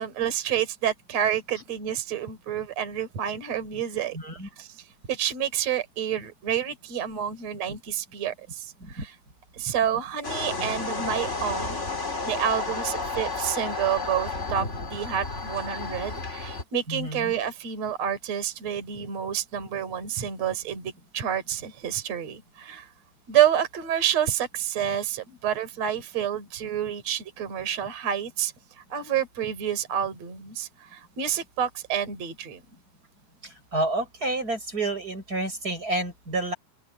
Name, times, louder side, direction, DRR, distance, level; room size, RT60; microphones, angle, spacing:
voice 1, 0.0-4.2 4.6-4.8 5.1-9.1 9.5-11.8 12.3-22.9 23.3-28.5 28.9-32.6, right 9 dB, 40° right, 4.7 m, -28 dB
voice 2, 4.1-4.5 8.8-9.0 16.9-17.3 33.7-36.5, right 2 dB, 20° right, 7.1 m, -29 dB
sound 1, 10.2-16.6, left 3 dB, 20° left, 3.5 m, -32 dB
open air
omnidirectional pair, 4.8 m